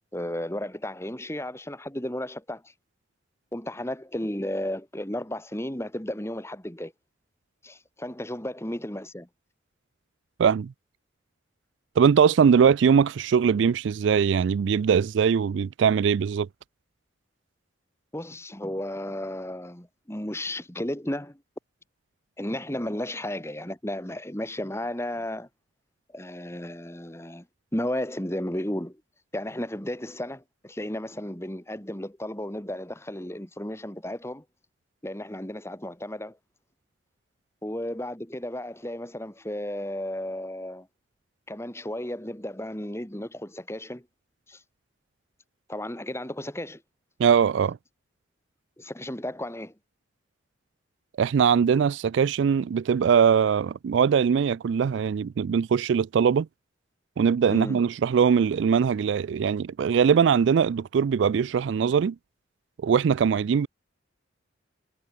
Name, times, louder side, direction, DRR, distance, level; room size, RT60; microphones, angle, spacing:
voice 1, 0.1-2.7 3.5-6.9 7.6-9.3 18.1-21.4 22.4-25.5 26.1-27.5 27.7-29.0 29.3-34.4 35.0-36.4 37.6-40.9 41.5-44.1 44.5-44.6 45.7-46.8 48.8-49.7 57.5-57.8, left 1 dB, 15° left, 2.1 m, -33 dB
voice 2, 10.4-10.7 12.0-16.5 47.2-47.8 51.2-56.5 57.2-62.2 62.8-63.7, right 7 dB, 70° right, 0.3 m, -21 dB
head